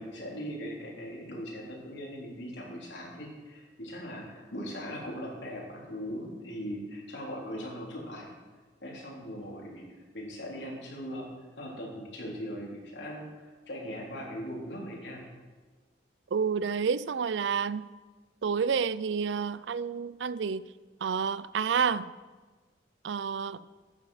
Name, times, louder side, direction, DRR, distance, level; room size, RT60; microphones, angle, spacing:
voice 1, 0.0-8.3 8.8-9.8 10.1-11.3 11.6-15.2, equal, 80° left, 3.7 m, -39 dB
voice 2, 16.3-17.9 18.4-20.6 21.0-22.1 23.0-23.7, right 6 dB, 85° right, 0.4 m, -29 dB
12.0 x 9.2 x 5.7 m
head